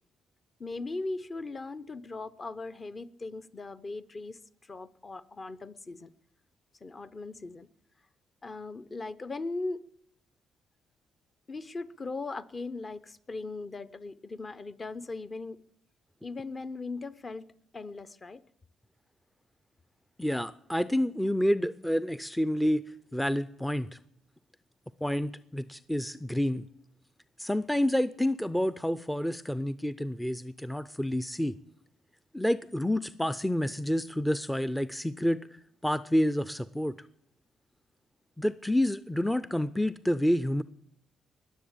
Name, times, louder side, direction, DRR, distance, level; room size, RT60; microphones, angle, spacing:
voice 1, 0.6-6.1 6.8-7.7 8.4-9.8 11.5-15.6 16.2-18.4, left 3 dB, 35° left, 15 dB, 0.8 m, -39 dB
voice 2, 20.2-22.8 23.1-24.0 25.0-26.7 27.4-31.6 32.3-35.4 35.8-37.0 38.4-40.6, equal, 5° left, 15 dB, 0.5 m, -28 dB
20.5 x 7.3 x 8.7 m, 0.73 s
cardioid pair, 90°, 0 cm